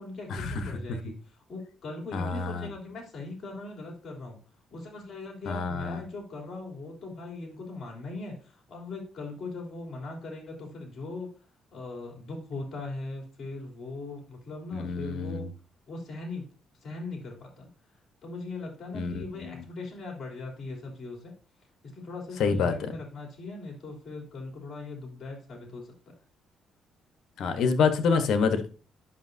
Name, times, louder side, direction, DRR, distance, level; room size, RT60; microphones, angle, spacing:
voice 1, 0.0-4.4 4.7-11.3 11.7-15.5 15.9-16.4 16.8-17.7 18.2-21.4 21.9-25.9, left 3 dB, 50° left, 0 dB, 3.3 m, -40 dB
voice 2, 2.1-2.7 5.5-6.0 14.7-15.5 18.9-19.6 22.4-22.7 27.4-28.8, left 5 dB, 70° left, 9 dB, 1.1 m, -27 dB
10.0 x 5.9 x 2.7 m, 0.37 s
cardioid pair, 90°, 0 cm